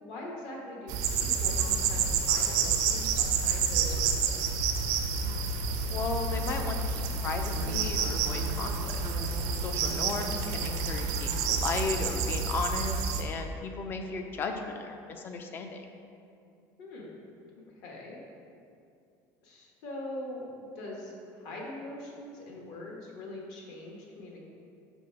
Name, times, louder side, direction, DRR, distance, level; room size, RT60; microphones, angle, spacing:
voice 1, 0.0-4.5 9.8-10.2 16.8-17.1 17.7-18.2 19.4-24.4, left 1 dB, 60° left, -2 dB, 1.2 m, -42 dB
sound 1, 0.9-13.2, right 5 dB, 60° right, 0.5 m, -29 dB
voice 2, 5.9-9.0 9.6-15.9, left 4 dB, 30° left, 5 dB, 0.5 m, -35 dB
5.4 x 3.2 x 5.6 m, 2.5 s
cardioid pair, 160°, 8 cm